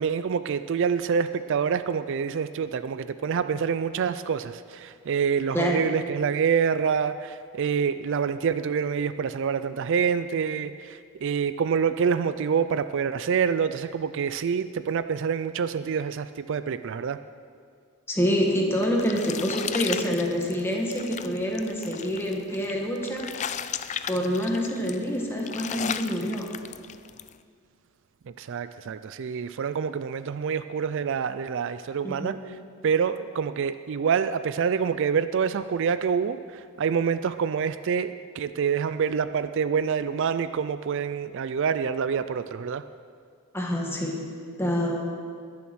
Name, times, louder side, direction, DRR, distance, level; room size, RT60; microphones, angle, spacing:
voice 1, 0.0-17.2 28.4-32.6 32.8-42.8, right 6 dB, 55° right, 12 dB, 0.4 m, -26 dB
voice 2, 18.1-23.6 24.1-26.5 32.0-32.4 43.5-44.2 44.6-45.1, equal, 10° left, -1 dB, 1.7 m, -27 dB
sound 1, 18.4-27.3, left 8 dB, 30° left, 0.3 m, -36 dB
21.0 x 7.1 x 6.2 m, 2.2 s
head